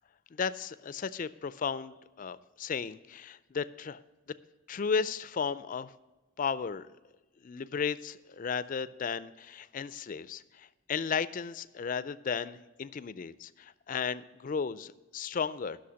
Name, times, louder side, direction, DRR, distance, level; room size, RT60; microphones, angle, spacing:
voice 1, 0.4-4.0 4.7-5.9 6.4-6.9 7.4-15.8, left 6 dB, 40° left, 16 dB, 0.3 m, -34 dB
11.5 x 6.4 x 6.3 m, 1.1 s
head